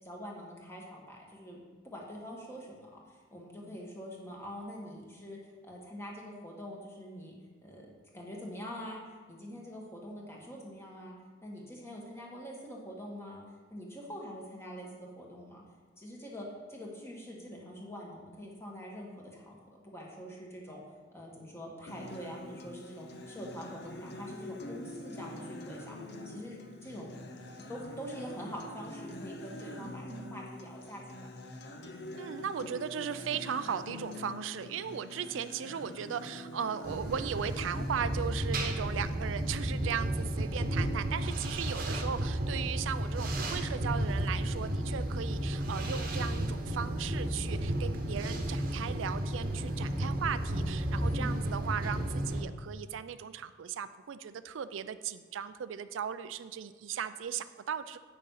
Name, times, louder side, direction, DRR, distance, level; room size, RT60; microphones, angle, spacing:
voice 1, 0.0-7.4 7.6-11.1 11.4-13.4 13.7-15.6 16.0-20.8 21.1-26.0 26.2-27.2 27.7-31.2 51.0-51.4, equal, 15° left, -2 dB, 1.7 m, -45 dB
Acoustic guitar, 21.9-37.9, left 1 dB, 60° left, 0.9 m, -45 dB
voice 2, 29.6-30.4 32.2-58.0, right 7 dB, 85° right, 12 dB, 0.4 m, -37 dB
sound 1, 36.8-52.4, right 1 dB, 50° right, 1.1 m, -33 dB
8.9 x 6.5 x 5.6 m, 1.4 s
head